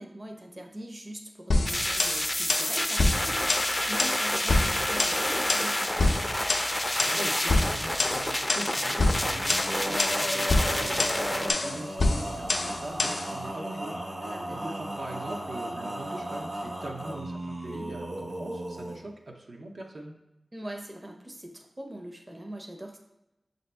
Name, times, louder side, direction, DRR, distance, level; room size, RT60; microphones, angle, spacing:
voice 1, 0.0-3.4 3.9-6.2 14.2-14.8 20.5-23.0, right 1 dB, 30° right, 3 dB, 0.6 m, -41 dB
sound 1, 1.5-13.3, left 2 dB, 90° left, 0.4 m, -27 dB
sound 2, 1.7-11.5, left 1 dB, 15° left, 0.4 m, -29 dB
voice 2, 7.1-13.9 14.5-20.1, right 2 dB, 75° right, 0 dB, 0.6 m, -41 dB
Male singing, 9.2-19.0, right 1 dB, 60° right, 1.3 m, -36 dB
5.8 x 2.7 x 3.3 m, 0.92 s
wide cardioid pair, 65°, 0 cm